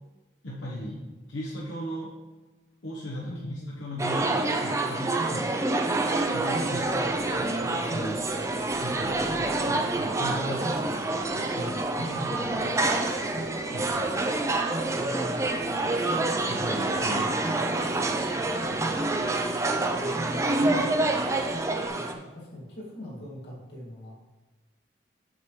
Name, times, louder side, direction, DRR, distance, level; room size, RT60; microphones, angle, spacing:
voice 1, 0.4-1.0 1.3-2.2 2.8-5.9 6.3-6.9 7.4-10.7 11.3-12.6 13.7-14.3 16.5-18.9, equal, 80° left, -5 dB, 1.0 m, -38 dB
voice 2, 3.2-4.0 6.9-7.2 14.9-15.4 17.1-17.4 19.9-21.3 21.9-24.1, left 1 dB, 65° left, -4 dB, 2.1 m, -41 dB
sound 1, 4.0-22.1, right 2 dB, 15° right, 0.4 m, -27 dB
Singing, 5.9-21.9, equal, 5° left, 0.9 m, -44 dB
7.8 x 6.9 x 3.2 m, 1.2 s
head